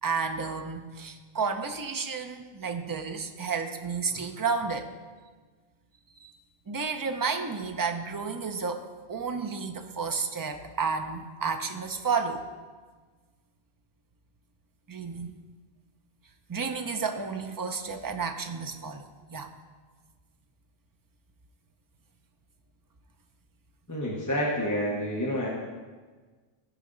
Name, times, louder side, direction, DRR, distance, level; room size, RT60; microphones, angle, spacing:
voice 1, 0.0-4.9 6.2-6.3 6.7-12.4 14.9-15.3 16.5-19.0 19.3-19.5, right 5 dB, 25° right, 5 dB, 0.5 m, -31 dB
voice 2, 23.9-25.5, equal, 20° left, -3 dB, 1.0 m, -28 dB
15.0 x 5.1 x 3.9 m, 1.4 s
omnidirectional pair, 1.1 m